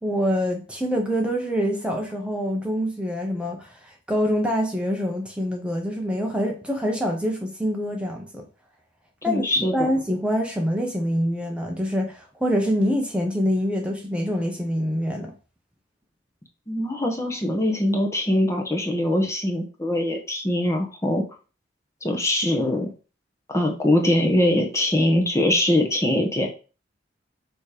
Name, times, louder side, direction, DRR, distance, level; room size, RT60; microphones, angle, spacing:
voice 1, 0.0-8.5 9.2-15.3, equal, 5° right, 1.0 m, -25 dB
voice 2, 9.3-9.9 16.7-21.2 22.0-22.9 23.5-26.5, left 1 dB, 15° left, 1.1 m, -22 dB
7.1 x 3.1 x 5.0 m
head